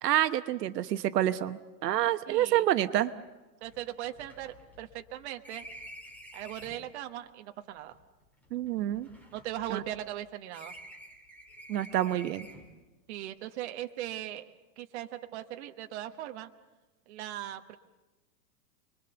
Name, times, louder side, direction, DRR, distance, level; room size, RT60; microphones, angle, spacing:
voice 1, 0.0-3.1 8.5-9.1 9.7-9.8 11.7-12.5, right 12 dB, 75° right, 10 dB, 1.1 m, -28 dB
voice 2, 2.3-2.7 3.6-5.7 6.3-8.0 9.3-10.7 13.1-16.5 17.1-17.7, right 13 dB, 40° right, 6 dB, 1.1 m, -39 dB
sound 1, 3.1-3.2 3.6-6.9 7.8-10.2 10.5-12.8, equal, 5° left, 2.0 m, -50 dB
29.5 x 22.0 x 6.9 m, 1.2 s
supercardioid pair, 170°, 49 cm